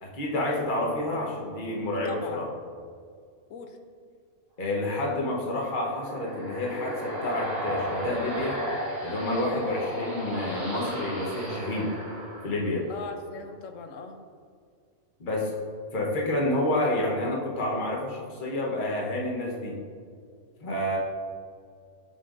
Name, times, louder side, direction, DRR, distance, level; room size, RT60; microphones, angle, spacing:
voice 1, 0.0-2.5 4.6-8.6 9.0-11.9 12.4-12.9 15.2-15.5 15.9-19.8 20.6-21.0, left 1 dB, 40° left, -3 dB, 1.1 m, -29 dB
voice 2, 2.0-2.5 3.5-3.8 12.9-14.2, left 4 dB, 70° left, 6 dB, 1.0 m, -39 dB
sound 1, 5.7-13.0, right 1 dB, 75° right, 2.2 m, -35 dB
7.4 x 5.5 x 2.5 m, 2.1 s
omnidirectional pair, 1.5 m